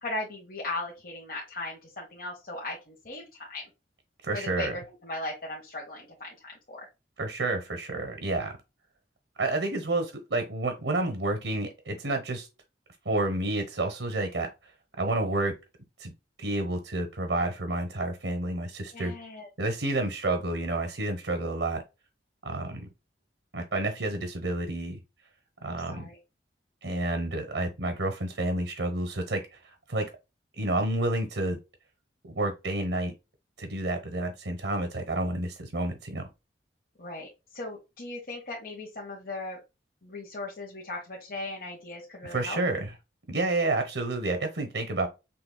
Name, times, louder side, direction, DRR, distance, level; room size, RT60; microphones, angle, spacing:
voice 1, 0.0-3.6 4.3-6.9 18.9-19.5 25.6-26.2 37.0-39.6 40.0-42.6, left 2 dB, 50° left, 1.3 m, -38 dB
voice 2, 4.2-4.7 7.2-8.5 9.4-12.5 13.0-14.7 15.0-15.5 16.0-16.1 16.4-19.1 19.6-21.8 22.4-22.8 23.5-25.0 25.6-26.0 26.8-30.0 30.6-31.6 32.3-33.1 33.6-36.2 42.3-42.9 43.3-45.1, right 2 dB, 80° right, 1.1 m, -29 dB
5.9 x 3.5 x 2.2 m
head